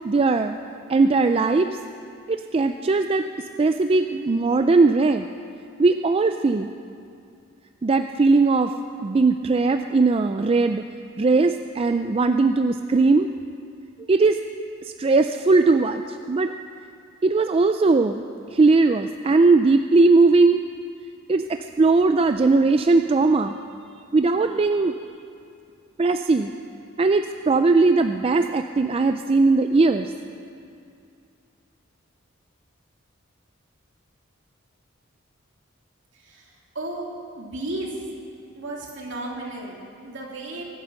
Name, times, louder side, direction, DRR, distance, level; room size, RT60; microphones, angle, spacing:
voice 1, 0.0-0.6 0.9-1.7 2.3-3.3 3.6-5.2 5.8-6.7 7.8-8.7 9.0-10.8 11.2-13.3 14.1-14.4 15.0-16.0 16.3-16.5 17.2-18.3 18.5-20.6 21.3-23.6 24.1-24.9 26.0-26.5 27.0-30.1, right 3 dB, 30° right, 7 dB, 0.3 m, -19 dB
voice 2, 36.1-37.1 37.3-37.9 38.5-40.6, right 2 dB, 65° right, -2 dB, 2.9 m, -34 dB
23.5 x 9.5 x 6.4 m, 2.5 s
head